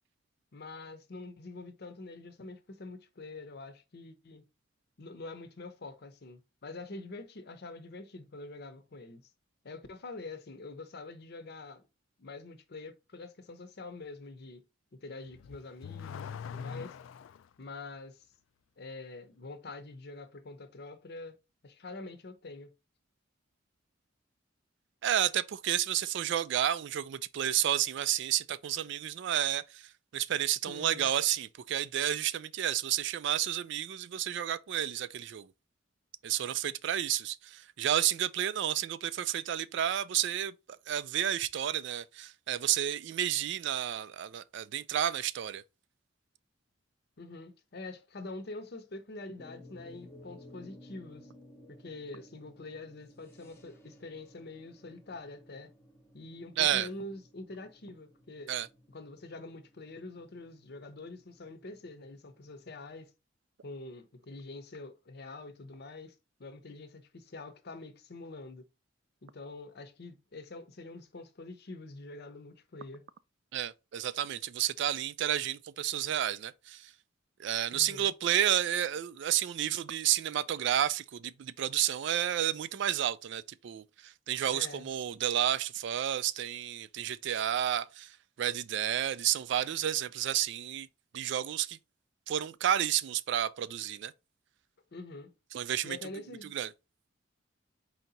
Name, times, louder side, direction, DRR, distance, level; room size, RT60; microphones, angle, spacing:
voice 1, 0.5-4.4 5.0-9.3 9.6-11.8 12.2-14.6 15.0-17.0 17.6-18.2 18.8-21.3 21.6-22.7 30.7-31.1 47.2-51.3 51.7-55.7 56.1-58.5 58.9-63.1 63.6-66.1 66.4-68.6 69.2-73.0 77.7-78.1 84.5-84.9 94.9-95.3 95.8-96.5, left 2 dB, 55° left, 0.7 m, -45 dB
Car / Accelerating revving vroom, 15.3-17.5, left 7 dB, 80° left, 0.3 m, -42 dB
voice 2, 25.0-35.5 36.2-45.6 56.6-56.9 58.5-58.7 73.5-76.9 77.4-90.9 91.1-91.8 92.3-94.1 95.5-96.0 96.5-96.7, right 11 dB, 60° right, 0.3 m, -31 dB
sound 1, 49.4-62.7, left 1 dB, 15° left, 0.7 m, -57 dB
4.5 x 2.8 x 3.9 m
head